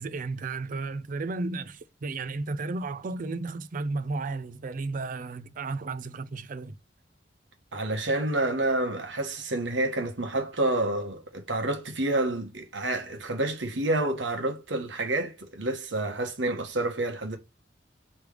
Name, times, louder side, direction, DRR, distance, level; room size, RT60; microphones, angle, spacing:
voice 1, 0.0-6.7, right 3 dB, 45° right, 0.5 m, -33 dB
voice 2, 7.7-17.4, right 2 dB, 90° right, 1.2 m, -28 dB
3.4 x 3.2 x 4.8 m
head